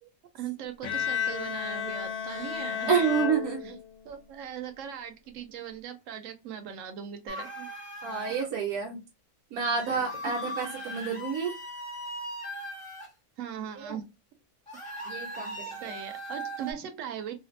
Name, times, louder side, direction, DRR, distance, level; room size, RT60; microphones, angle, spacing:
voice 1, 0.3-2.9 4.1-7.7 9.9-10.0 13.4-14.0 14.9-15.1 15.8-17.4, right 9 dB, 70° right, 0.9 m, -39 dB
Bowed string instrument, 0.8-4.2, left 8 dB, 65° left, 0.8 m, -33 dB
voice 2, 2.8-3.8 8.0-9.0 9.5-11.6 13.8-14.0 15.1-15.9, right 6 dB, 85° right, 1.1 m, -29 dB
sound 1, 7.3-8.5 9.7-13.1 14.7-16.7, equal, 35° left, 0.6 m, -39 dB
2.5 x 2.4 x 2.5 m
omnidirectional pair, 1.6 m